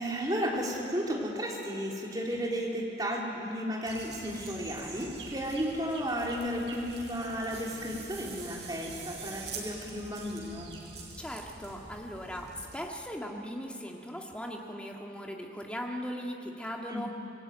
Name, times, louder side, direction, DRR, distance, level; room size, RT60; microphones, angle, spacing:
voice 1, 0.0-10.8 16.9-17.1, equal, 20° right, -2 dB, 3.6 m, -33 dB
sound 1, 3.8-12.8, right 4 dB, 75° right, 4.6 m, -45 dB
voice 2, 11.2-17.1, equal, 5° left, 0 dB, 2.0 m, -39 dB
26.0 x 20.5 x 9.1 m, 3.0 s
head